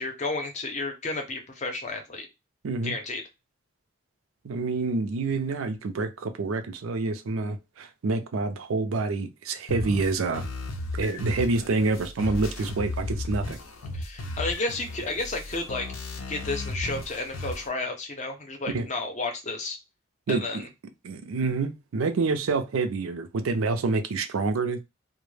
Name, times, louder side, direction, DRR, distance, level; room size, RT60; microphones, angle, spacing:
voice 1, 0.0-2.3 2.8-3.2 13.9-15.9 16.3-19.8 20.3-20.7, left 3 dB, 35° left, 0.6 m, -32 dB
voice 2, 2.6-2.9 4.4-10.4 11.0-13.6 18.7-18.9 20.3-20.6 21.0-24.8, right 3 dB, 90° right, 0.4 m, -27 dB
sound 1, 9.7-17.7, left 2 dB, 85° left, 0.5 m, -35 dB
2.1 x 2.1 x 3.1 m
head